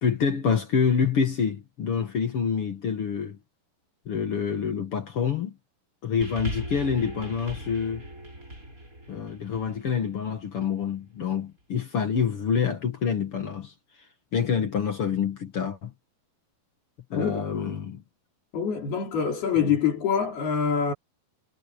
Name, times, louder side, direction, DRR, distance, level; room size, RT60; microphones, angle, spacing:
voice 1, 0.0-3.4 4.1-5.5 6.0-8.1 9.1-13.7 14.3-15.9 17.1-18.0 19.6-19.7, left 6 dB, 50° left, 1.7 m, -27 dB
sound 1, 6.2-10.8 11.6-11.7, right 1 dB, 20° right, 6.6 m, -39 dB
voice 2, 18.5-20.9, left 6 dB, 70° left, 6.5 m, -25 dB
omnidirectional pair, 4.6 m